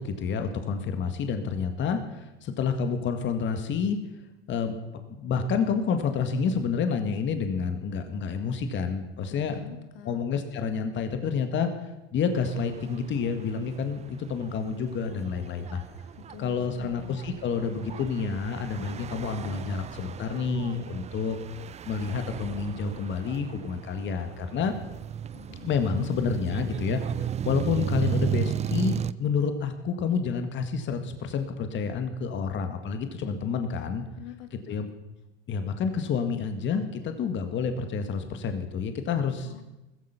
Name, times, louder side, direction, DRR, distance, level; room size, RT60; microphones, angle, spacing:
voice 1, 0.0-4.0 4.5-4.8 5.1-9.6 10.1-15.8 16.4-21.4 21.9-24.7 25.6-27.0 27.5-28.9 29.2-34.0 34.7-34.9 35.5-39.5, left 6 dB, 40° left, 7 dB, 1.8 m, -29 dB
voice 2, 9.3-10.2 16.2-17.2 25.3-25.7 26.0-26.9 34.2-34.8 39.4-39.6, left 8 dB, 75° left, 7 dB, 2.2 m, -46 dB
sound 1, 12.3-29.1, right 9 dB, 20° right, 0.5 m, -35 dB
15.0 x 15.0 x 5.8 m, 1.0 s
hypercardioid pair, 100°, 30 cm